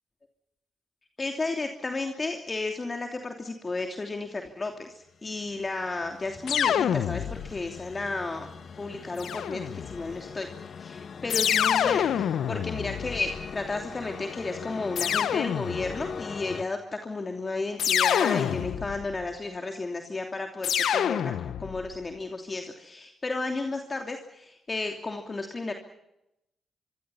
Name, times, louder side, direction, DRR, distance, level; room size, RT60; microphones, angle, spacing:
voice 1, 1.2-8.5 8.8-10.5 10.8-21.3 21.6-25.7, left 3 dB, 35° left, 4 dB, 2.9 m, -33 dB
sound 1, 5.1-16.6, left 6 dB, 60° left, 1.6 m, -42 dB
sound 2, 6.5-7.7 9.2-10.0 11.3-13.6 15.0-16.1 17.8-19.1 20.6-21.9, left 9 dB, 75° left, 1.1 m, -27 dB
24.5 x 24.5 x 5.7 m, 0.85 s
supercardioid pair, 65°, 0 cm